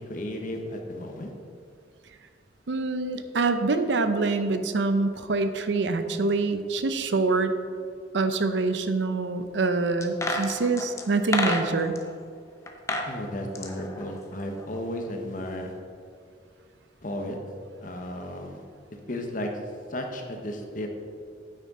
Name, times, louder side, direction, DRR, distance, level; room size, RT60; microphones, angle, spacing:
voice 1, 0.0-1.3 13.1-15.7 17.0-17.4 17.8-18.6 19.1-19.5 19.9-20.9, left 1 dB, 45° left, 3 dB, 1.1 m, -34 dB
voice 2, 2.7-7.5 8.1-11.9, right 3 dB, 75° right, 9 dB, 0.6 m, -25 dB
sound 1, 10.0-12.0 12.7-13.1 13.4-14.8 15.0-15.1, left 1 dB, 15° left, 0.7 m, -30 dB
9.4 x 8.9 x 3.8 m, 2.2 s
head